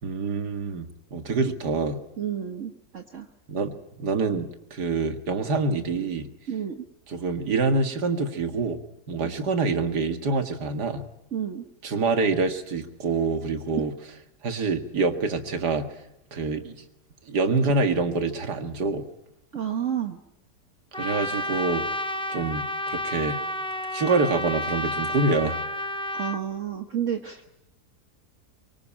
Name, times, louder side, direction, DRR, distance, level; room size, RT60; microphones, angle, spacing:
voice 1, 0.0-2.0 3.5-6.3 7.1-8.8 9.1-11.0 11.8-13.9 14.4-15.9 16.3-16.8 17.3-19.0 21.0-21.8 22.3-23.4 23.9-25.6, right 3 dB, 80° right, 8 dB, 2.4 m, -26 dB
voice 2, 2.2-3.3 6.5-6.9 11.3-11.6 19.5-20.2 26.1-27.5, right 9 dB, 50° right, 5 dB, 1.5 m, -30 dB
Trumpet, 20.9-26.4, left 1 dB, 5° left, 0.8 m, -31 dB
24.0 x 24.0 x 8.8 m, 0.85 s
omnidirectional pair, 1.7 m